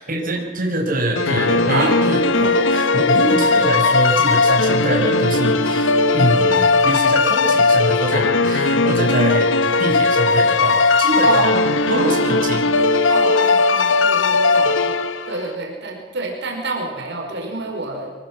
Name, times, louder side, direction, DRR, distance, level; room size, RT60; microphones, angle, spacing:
voice 1, 0.0-9.5 9.8-11.4 11.9-12.6, right 1 dB, 50° right, 0 dB, 5.4 m, -23 dB
sound 1, 1.2-15.5, left 3 dB, 90° left, 1.2 m, -17 dB
voice 2, 11.2-12.7 13.1-18.1, right 3 dB, 65° right, 0 dB, 5.3 m, -27 dB
25.0 x 20.0 x 7.6 m, 1.4 s
head